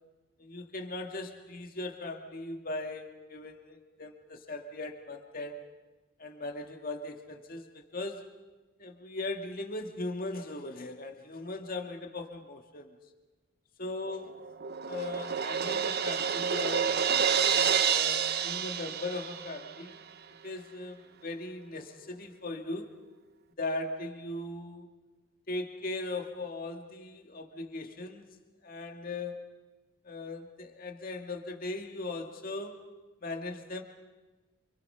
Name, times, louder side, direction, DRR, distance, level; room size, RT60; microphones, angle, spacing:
voice 1, 0.4-5.6 6.2-8.3 8.8-12.9 13.8-14.4 14.9-17.2 17.8-20.0 20.4-22.9 23.6-24.9 25.5-28.3 28.6-29.5 30.0-32.8 33.2-33.8, left 2 dB, 40° left, 4 dB, 2.0 m, -39 dB
Crash cymbal, 14.1-19.8, right 7 dB, 45° right, 0.8 m, -29 dB
28.0 x 26.5 x 5.7 m, 1.2 s
head